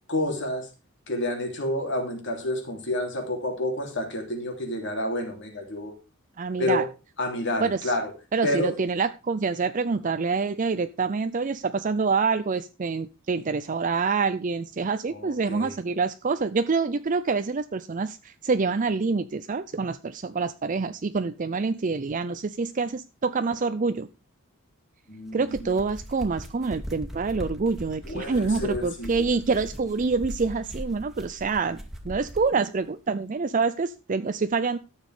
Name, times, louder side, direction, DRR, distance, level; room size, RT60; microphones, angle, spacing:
voice 1, 0.1-0.7 1.1-5.9 6.6-6.8 7.2-8.1 8.4-8.8 15.1-15.7 25.1-25.7 28.0-29.1, left 1 dB, 60° left, 3.4 m, -29 dB
voice 2, 6.4-6.8 7.6-7.9 8.3-24.1 25.3-34.8, right 4 dB, 35° right, 0.5 m, -26 dB
sound 1, 25.3-32.5, equal, ahead, 2.2 m, -39 dB
13.0 x 7.2 x 5.0 m
head